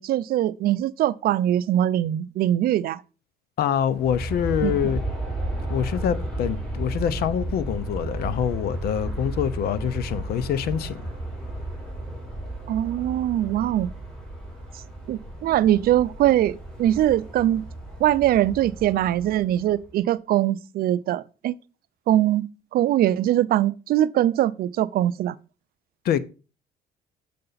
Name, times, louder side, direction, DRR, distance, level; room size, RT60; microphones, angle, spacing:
voice 1, 0.0-3.0 4.6-4.9 12.7-13.9 15.1-17.6 18.0-21.6 22.1-22.5 22.7-25.4, right 12 dB, 60° right, 0.5 m, -22 dB
voice 2, 3.6-5.0 5.7-11.0 26.0-26.2, left 9 dB, 70° left, 0.7 m, -25 dB
Aircraft, 3.8-19.9, right 1 dB, 5° left, 3.3 m, -33 dB
6.7 x 6.7 x 4.0 m
cardioid pair, 110°, 17 cm